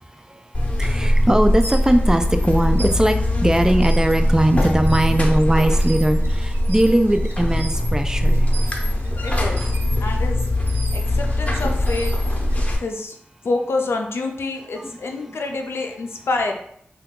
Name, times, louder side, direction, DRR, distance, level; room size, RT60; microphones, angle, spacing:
Buzz, 0.5-12.8, left 1 dB, 35° left, 0.7 m, -21 dB
voice 1, 0.7-8.5, right 1 dB, 15° right, 7 dB, 0.4 m, -19 dB
sound 1, 1.4-12.7, right 2 dB, 75° right, 0.5 m, -40 dB
voice 2, 9.2-9.6 10.0-10.5 10.9-12.1 12.8-13.2 13.4-16.6, left 3 dB, 90° left, 3 dB, 0.4 m, -27 dB
2.7 x 2.3 x 3.6 m, 0.68 s
cardioid pair, 45°, 4 cm